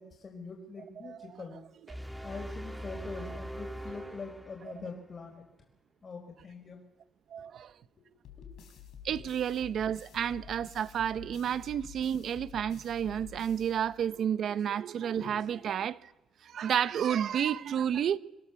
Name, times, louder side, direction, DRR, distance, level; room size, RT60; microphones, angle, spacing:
voice 1, 0.0-1.6 2.2-5.4 6.0-6.8 8.3-8.4 9.1-9.3 13.3-13.4 15.2-15.4, left 4 dB, 40° left, 4.6 m, -44 dB
sound 1, 1.9-5.1, right 1 dB, 5° right, 1.4 m, -42 dB
voice 2, 7.3-7.7 9.0-16.0 16.4-18.2, right 9 dB, 65° right, 0.8 m, -31 dB
sound 2, 8.2-14.4, left 7 dB, 80° left, 4.1 m, -50 dB
25.0 x 16.5 x 7.0 m
cardioid pair, 90°, 0 cm